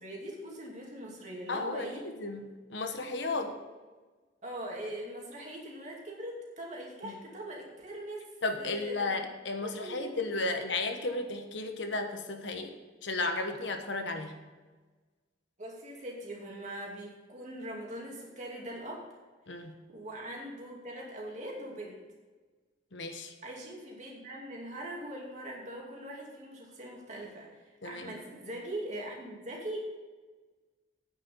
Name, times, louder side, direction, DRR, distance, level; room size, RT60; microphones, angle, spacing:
voice 1, 0.0-2.1 3.3-3.8 4.4-9.3 9.6-10.6 11.0-11.1 15.6-19.1 19.5-22.0 23.4-29.8, right 1 dB, 35° right, -2 dB, 2.5 m, -42 dB
voice 2, 1.5-3.6 7.0-7.2 8.4-12.7 13.0-14.4 19.5-19.7 22.9-23.3 27.8-28.1, left 3 dB, 70° left, 6 dB, 1.1 m, -34 dB
9.2 x 6.5 x 6.8 m, 1.3 s
head